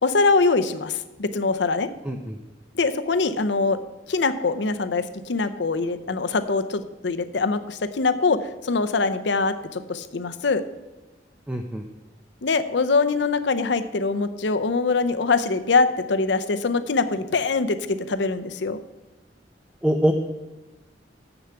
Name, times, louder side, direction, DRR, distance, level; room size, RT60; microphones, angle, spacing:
voice 1, 0.0-1.9 2.7-3.8 4.1-10.6 12.4-18.8, left 4 dB, 75° left, 11 dB, 0.6 m, -23 dB
voice 2, 2.0-2.4 11.5-11.8 19.8-20.1, equal, 5° right, 3 dB, 0.5 m, -23 dB
7.1 x 6.8 x 7.7 m, 1.1 s
head